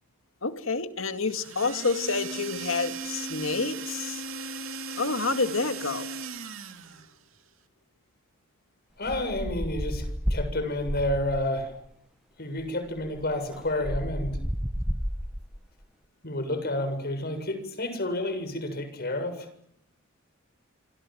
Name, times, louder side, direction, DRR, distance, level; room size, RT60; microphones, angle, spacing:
voice 1, 0.4-4.2 5.0-6.1, left 4 dB, 75° left, 8 dB, 2.3 m, -28 dB
sound 1, 1.2-7.1, right 4 dB, 80° right, 2.5 m, -37 dB
voice 2, 9.0-11.7 12.4-14.4 16.2-19.5, left 1 dB, 50° left, 9 dB, 7.3 m, -30 dB
sound 2, 9.0-11.6 12.6-12.7 13.0-15.6, equal, 5° right, 1.1 m, -32 dB
27.0 x 26.5 x 7.7 m, 0.73 s
head